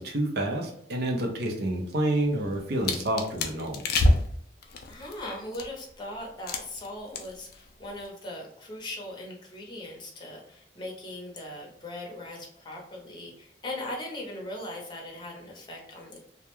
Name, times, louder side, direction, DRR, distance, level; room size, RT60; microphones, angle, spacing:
voice 1, 0.0-3.9, right 1 dB, 65° right, 2 dB, 0.6 m, -28 dB
sound 1, 2.3-5.9 6.5-6.9 7.1-7.6 7.8-8.1, left 1 dB, 60° left, 0.4 m, -27 dB
voice 2, 4.9-16.3, left 1 dB, 25° left, -1 dB, 0.7 m, -39 dB
2.3 x 2.1 x 2.9 m, 0.69 s
head